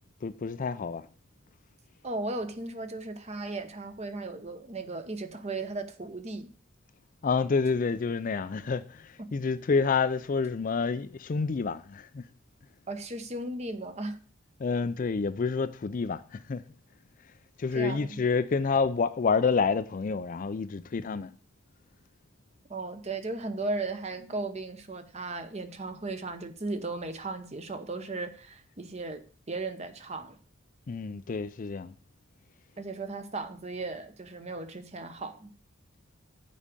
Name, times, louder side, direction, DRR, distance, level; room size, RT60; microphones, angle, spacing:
voice 1, 0.2-1.0 7.2-12.2 14.6-16.6 17.6-21.3 30.9-31.9, left 5 dB, 40° left, 0.4 m, -28 dB
voice 2, 2.0-6.5 9.2-9.3 12.9-14.2 17.7-18.2 22.7-30.4 32.8-35.5, right 2 dB, 30° right, 0.9 m, -36 dB
7.4 x 5.0 x 6.7 m
head